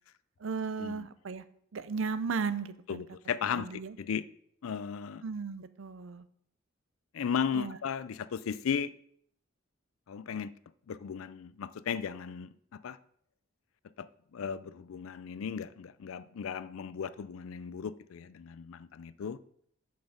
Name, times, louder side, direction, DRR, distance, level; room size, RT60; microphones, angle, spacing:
voice 1, 0.4-1.4 1.7-3.0 3.5-4.0 5.2-6.3 7.5-7.8, right 5 dB, 65° right, 0.5 m, -35 dB
voice 2, 2.9-4.2 4.6-5.2 7.1-8.9 10.1-10.5 10.9-13.0 14.0-19.4, left 7 dB, 80° left, 0.4 m, -36 dB
7.1 x 6.0 x 5.0 m
head